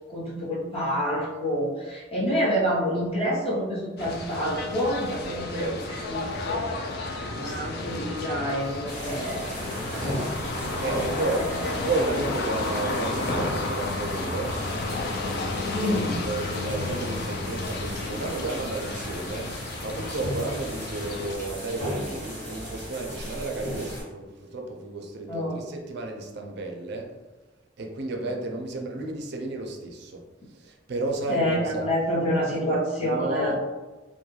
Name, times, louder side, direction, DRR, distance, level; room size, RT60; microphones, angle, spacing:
voice 1, 0.1-6.7 7.3-9.5 10.7-12.2 15.7-16.2 25.3-25.6 31.3-33.6, equal, 30° left, -7 dB, 0.9 m, -28 dB
sound 1, 4.0-21.4, left 2 dB, 55° left, 0.3 m, -32 dB
voice 2, 5.3-5.9 10.8-11.5 11.8-14.6 15.8-27.1 27.8-30.2 30.6-31.9 33.0-33.6, right 2 dB, 60° right, 2 dB, 0.4 m, -32 dB
sound 2, 8.9-24.0, equal, 15° left, 1.2 m, -36 dB
2.3 x 2.1 x 3.1 m, 1.2 s
head